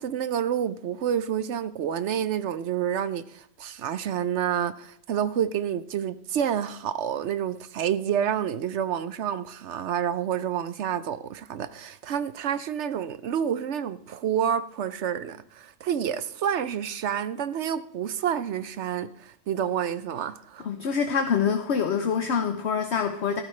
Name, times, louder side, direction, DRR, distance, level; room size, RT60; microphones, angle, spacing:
voice 1, 0.0-20.7, right 9 dB, 65° right, 0.9 m, -29 dB
voice 2, 20.6-23.4, left 6 dB, 60° left, 1.0 m, -25 dB
14.0 x 12.0 x 3.2 m
omnidirectional pair, 1.4 m